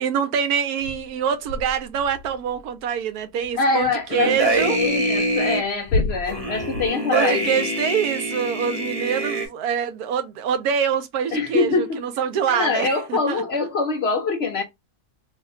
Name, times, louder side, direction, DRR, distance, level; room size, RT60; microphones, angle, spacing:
voice 1, 0.0-4.8 7.1-13.4, right 7 dB, 85° right, 1.2 m, -25 dB
sound 1, 0.8-4.3 4.7-6.9, left 2 dB, 80° left, 1.2 m, -31 dB
voice 2, 3.6-4.3 4.7-7.6 11.3-12.0 12.5-14.6, left 4 dB, 65° left, 0.7 m, -24 dB
sound 2, 4.1-5.6 6.3-9.5, right 1 dB, 35° right, 0.7 m, -24 dB
3.1 x 2.2 x 3.6 m
omnidirectional pair, 1.6 m